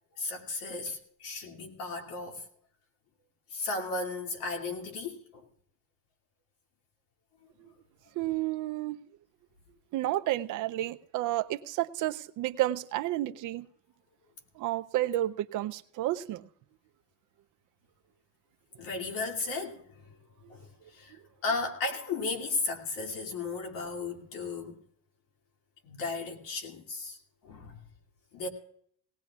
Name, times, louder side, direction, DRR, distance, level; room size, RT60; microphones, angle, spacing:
voice 1, 0.2-2.4 3.5-5.4 18.8-20.2 20.5-21.2 21.4-24.8 25.8-27.2 27.4-27.8 28.3-28.5, left 3 dB, 75° left, 2.5 m, -35 dB
voice 2, 8.2-9.0 9.9-13.7 14.6-16.4 20.4-20.5, right 15 dB, 60° right, 0.6 m, -31 dB
19.0 x 18.0 x 2.4 m
cardioid pair, 160°, 34 cm